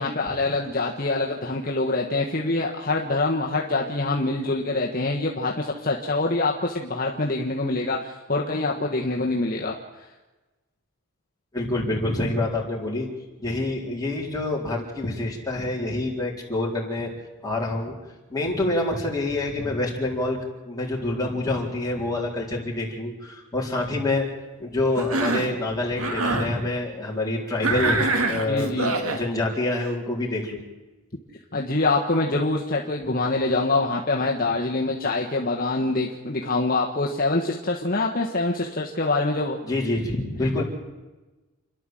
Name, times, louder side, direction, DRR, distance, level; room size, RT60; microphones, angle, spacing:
voice 1, 0.0-9.7 28.5-28.9 31.5-39.6 40.6-40.7, left 2 dB, 40° left, 0 dB, 1.4 m, -25 dB
voice 2, 11.5-13.1 13.4-17.1 17.4-17.9 18.3-20.4 20.7-24.3 24.6-30.6 39.6-40.6, left 2 dB, 15° left, -3 dB, 4.1 m, -27 dB
Cough, 25.0-25.6 26.0-26.5 27.6-29.2, right 2 dB, 75° right, 2.2 m, -25 dB
29.5 x 11.5 x 7.7 m, 1.1 s
head